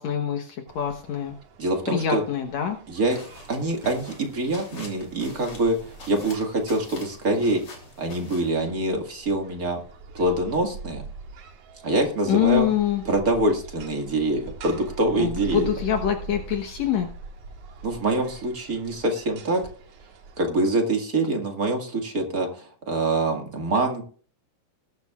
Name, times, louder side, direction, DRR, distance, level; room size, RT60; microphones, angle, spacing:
voice 1, 0.0-1.4 1.9-2.8 12.3-13.0 15.2-17.1, left 9 dB, 65° left, 5 dB, 2.2 m, -25 dB
sound 1, 0.7-20.5, right 4 dB, 75° right, 3.0 m, -43 dB
voice 2, 1.6-2.2 2.9-3.2 3.5-7.6 8.0-9.8 10.1-11.0 11.8-12.7 13.1-15.7 17.8-19.6 20.4-24.0, right 2 dB, 35° right, 3 dB, 1.9 m, -25 dB
sound 2, 3.1-8.5, left 3 dB, 45° left, 3.9 m, -45 dB
20.0 x 10.5 x 2.4 m, 0.43 s
omnidirectional pair, 3.6 m